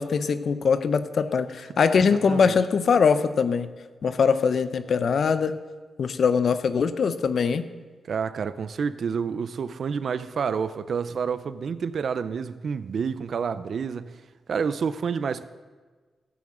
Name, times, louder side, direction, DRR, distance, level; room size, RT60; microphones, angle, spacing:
voice 1, 0.0-3.7 4.0-5.6 6.0-7.7, left 5 dB, 60° left, 0.5 m, -22 dB
voice 2, 2.1-2.6 8.1-14.2 14.5-15.4, right 6 dB, 55° right, 0.4 m, -29 dB
15.0 x 8.7 x 3.7 m
wide cardioid pair, 135°, 0 cm